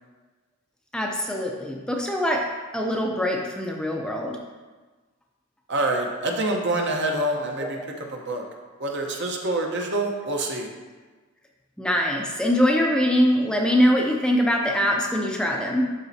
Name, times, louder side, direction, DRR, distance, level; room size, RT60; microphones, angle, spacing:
voice 1, 0.9-4.4 7.6-7.7 11.8-15.9, equal, 5° left, 0 dB, 0.5 m, -23 dB
voice 2, 5.7-8.4 8.8-10.7, right 2 dB, 60° right, 1 dB, 1.0 m, -26 dB
11.5 x 4.1 x 2.8 m, 1.3 s
head